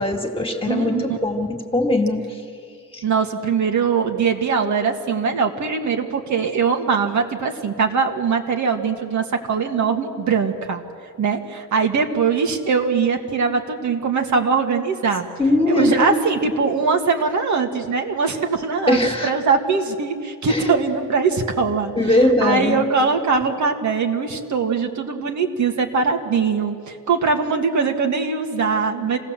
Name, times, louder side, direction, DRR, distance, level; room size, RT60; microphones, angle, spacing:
voice 1, 0.0-2.4 2.9-3.0 15.4-16.5 18.9-19.3 20.5-20.7 22.0-22.9, left 1 dB, 15° left, 2 dB, 2.2 m, -20 dB
voice 2, 0.7-1.0 3.0-10.8 11.2-15.3 15.7-21.9 22.4-29.2, right 5 dB, 55° right, 4 dB, 1.8 m, -21 dB
27.5 x 17.5 x 7.5 m, 2.3 s
wide cardioid pair, 160°, 34 cm